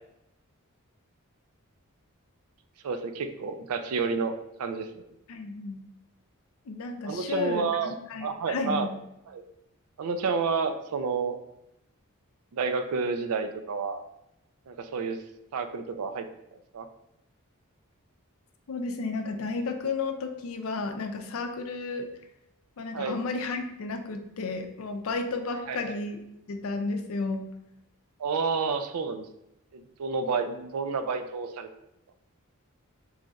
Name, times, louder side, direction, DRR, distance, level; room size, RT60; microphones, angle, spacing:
voice 1, 2.8-4.3 4.6-4.9 7.0-7.9 8.2-8.9 9.3-9.4 10.0-11.4 12.5-14.0 14.7-15.2 15.5-16.3 16.7-16.9 22.9-23.2 25.7-26.0 28.2-29.3 29.7-31.7, right 5 dB, 75° right, 8 dB, 0.4 m, -30 dB
voice 2, 5.3-5.8 6.7-9.0 18.7-22.1 22.8-26.2 26.5-27.5, left 3 dB, 65° left, 6 dB, 0.5 m, -32 dB
3.2 x 2.3 x 3.9 m, 0.85 s
head